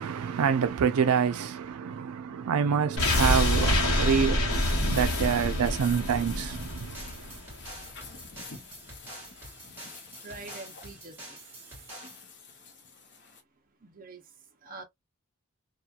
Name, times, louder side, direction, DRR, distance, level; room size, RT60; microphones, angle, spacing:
voice 1, 0.0-6.9, right 7 dB, 85° right, 0.4 m, -27 dB
sound 1, 3.0-7.9 8.2-8.3, left 1 dB, 80° left, 1.1 m, -27 dB
sound 2, 4.5-13.4, left 4 dB, 50° left, 0.8 m, -46 dB
sound 3, 6.6-12.2, right 1 dB, 10° right, 1.3 m, -47 dB
voice 2, 10.2-11.4 13.8-14.3 14.6-14.8, right 3 dB, 40° right, 0.7 m, -45 dB
2.8 x 2.3 x 2.3 m
head